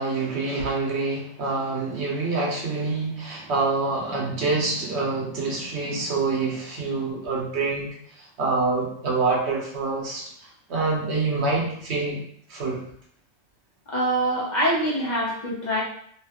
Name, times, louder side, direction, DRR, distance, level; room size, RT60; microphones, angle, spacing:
voice 1, 0.0-12.2 12.5-12.8, right 3 dB, 85° right, -2 dB, 1.1 m, -26 dB
voice 2, 13.9-15.8, right 1 dB, 45° left, -5 dB, 1.0 m, -24 dB
3.0 x 2.3 x 2.9 m, 0.65 s
omnidirectional pair, 1.1 m